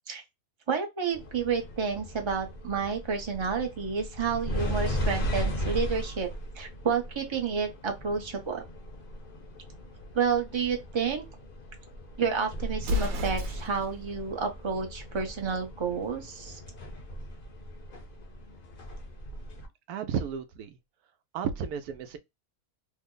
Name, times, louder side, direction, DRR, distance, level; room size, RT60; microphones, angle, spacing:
voice 1, 0.7-6.3 6.5-8.6 10.1-11.2 12.2-16.6, right 6 dB, 30° right, 0.6 m, -30 dB
sound 1, 1.1-19.7, equal, 45° left, 0.9 m, -37 dB
Explosion, 12.8-13.9, left 2 dB, 65° right, 1.1 m, -30 dB
voice 2, 19.9-20.8 21.3-22.2, right 7 dB, 85° right, 1.1 m, -33 dB
3.3 x 2.0 x 3.7 m
omnidirectional pair, 1.6 m